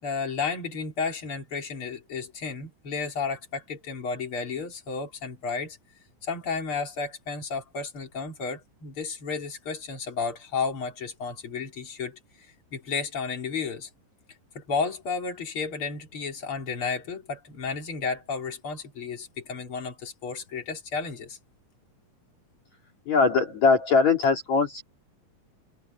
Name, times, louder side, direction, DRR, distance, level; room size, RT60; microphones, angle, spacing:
voice 1, 0.0-5.8 6.2-13.9 14.5-21.4, left 5 dB, 40° left, 4.6 m, -32 dB
voice 2, 23.1-24.8, left 4 dB, 55° left, 4.1 m, -21 dB
open air
omnidirectional pair, 3.9 m